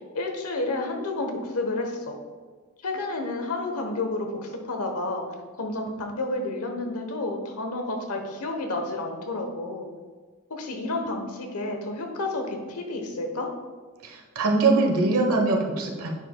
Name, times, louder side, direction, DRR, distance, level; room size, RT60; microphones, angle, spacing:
voice 1, 0.1-2.2 2.8-5.2 5.6-9.9 10.5-13.5, left 2 dB, 90° left, 3 dB, 1.0 m, -30 dB
voice 2, 14.0-16.1, right 3 dB, 85° right, 1 dB, 1.1 m, -22 dB
9.6 x 4.9 x 2.3 m, 1.4 s
head